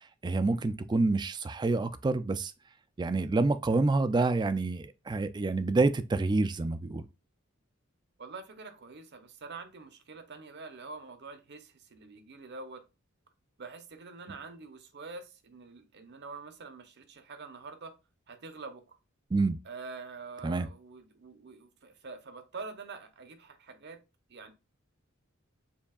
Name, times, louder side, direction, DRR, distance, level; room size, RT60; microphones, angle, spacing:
voice 1, 0.2-2.5 3.0-7.1 19.3-19.6 20.4-20.7, right 3 dB, 20° right, 0.3 m, -27 dB
voice 2, 8.2-12.8 13.6-17.9 18.3-19.0 19.6-24.0 24.3-24.5, right 4 dB, 55° right, 0.8 m, -46 dB
6.9 x 2.7 x 2.3 m
head